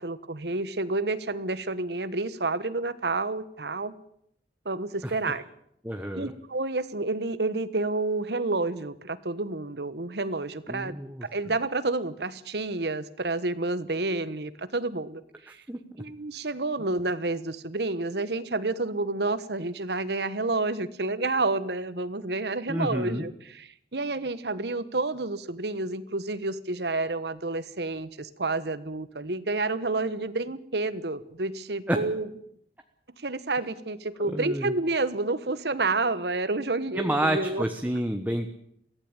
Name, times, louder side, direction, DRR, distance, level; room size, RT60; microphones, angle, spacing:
voice 1, 0.0-3.9 4.6-5.4 6.1-15.2 15.5-15.6 16.0-32.3 33.2-37.6, right 2 dB, 65° right, 15 dB, 1.3 m, -29 dB
voice 2, 5.0-5.3 5.8-6.3 10.7-11.3 15.7-15.8 22.7-23.2 31.9-32.0 34.3-34.7 36.9-38.5, right 1 dB, 10° right, 5 dB, 1.3 m, -29 dB
22.0 x 16.0 x 8.9 m, 0.72 s
head